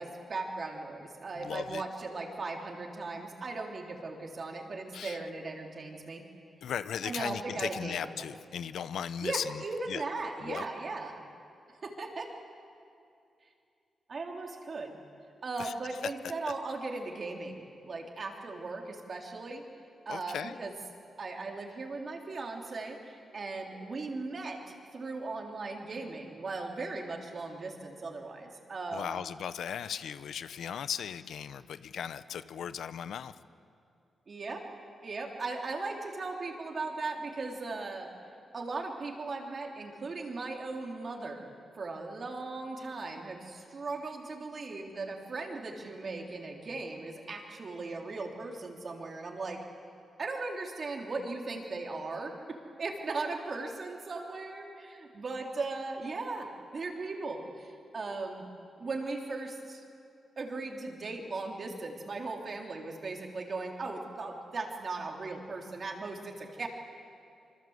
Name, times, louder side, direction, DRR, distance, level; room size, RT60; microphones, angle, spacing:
voice 1, 0.0-6.2 7.0-8.0 9.2-11.1 11.7-12.3 14.1-15.0 15.4-19.6 20.0-20.7 21.2-29.2 34.3-34.6 35.0-38.1 38.5-49.6 50.2-58.5 58.8-59.8 60.4-66.7, right 3 dB, 40° right, 2 dB, 3.3 m, -38 dB
voice 2, 1.4-1.8 4.9-5.2 6.6-9.6 9.9-10.0 10.4-10.7 15.6-15.7 20.1-20.6 28.9-33.4, left 8 dB, 90° left, 13 dB, 0.9 m, -37 dB
26.5 x 25.5 x 8.1 m, 2.5 s
wide cardioid pair, 150°, 0 cm